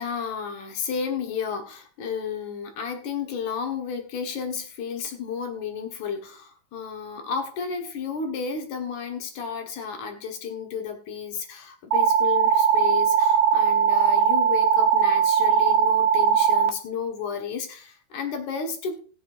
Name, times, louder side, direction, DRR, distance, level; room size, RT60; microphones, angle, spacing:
voice 1, 0.0-19.0, left 6 dB, 60° left, 4 dB, 2.6 m, -32 dB
sound 1, 11.9-16.7, right 7 dB, 80° right, 2.9 m, -20 dB
20.0 x 7.3 x 2.6 m, 0.40 s
omnidirectional pair, 4.6 m